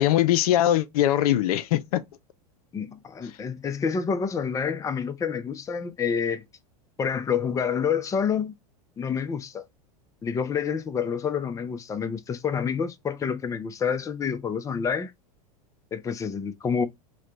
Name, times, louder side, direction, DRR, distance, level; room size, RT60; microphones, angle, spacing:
voice 1, 0.0-2.0, left 12 dB, 70° left, 0.5 m, -21 dB
voice 2, 2.7-6.4 7.0-8.5 9.0-9.6 10.2-15.1 15.9-16.9, left 6 dB, 15° left, 0.5 m, -28 dB
3.1 x 2.2 x 3.9 m
hypercardioid pair, 105°, 20 cm